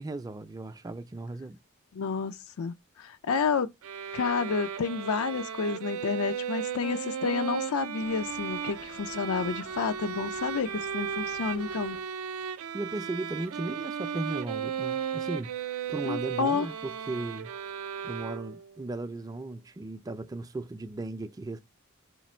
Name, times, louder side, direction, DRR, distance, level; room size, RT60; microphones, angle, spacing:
voice 1, 0.0-1.6 12.7-17.5 18.0-21.6, right 2 dB, 15° right, 0.3 m, -36 dB
voice 2, 1.9-3.7 4.1-12.0 16.0-16.7, left 5 dB, 90° left, 0.5 m, -30 dB
sound 1, 3.8-18.8, right 7 dB, 90° right, 0.4 m, -35 dB
sound 2, 8.0-12.0, left 4 dB, 70° left, 0.9 m, -51 dB
5.1 x 2.5 x 4.2 m
head